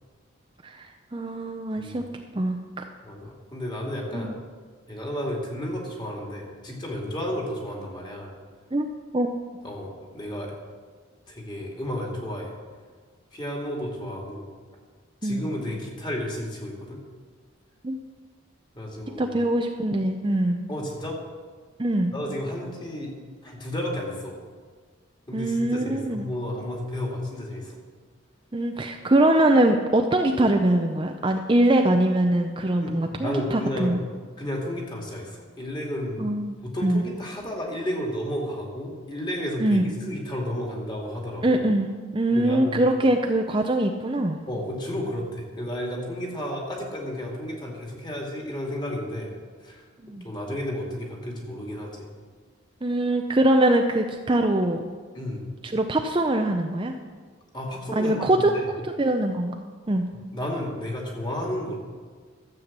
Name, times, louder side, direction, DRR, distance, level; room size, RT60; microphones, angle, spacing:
voice 1, 0.6-2.0 2.4-2.8 4.1-4.3 8.7-8.9 9.1-9.3 15.2-15.5 17.8-18.0 19.2-20.6 21.8-22.1 25.3-26.3 28.5-34.0 36.2-36.6 36.8-37.1 39.6-39.8 41.4-44.4 50.0-50.2 52.8-54.8 55.6-56.9 58.0-58.5 59.0-59.5 59.9-60.1, right 1 dB, 25° right, 4 dB, 0.5 m, -23 dB
voice 2, 1.8-2.1 3.0-4.3 4.9-8.3 9.6-10.5 11.3-12.5 13.3-14.5 15.2-17.0 18.7-19.4 20.7-21.2 22.1-23.1 23.4-24.4 25.3-27.8 32.8-34.0 34.4-36.3 36.6-41.6 42.3-42.8 44.5-49.3 49.6-49.8 50.2-52.1 55.1-55.4 57.5-58.7 60.3-61.8, left 1 dB, 20° left, -1 dB, 2.3 m, -32 dB
12.5 x 7.8 x 7.3 m, 1.5 s
head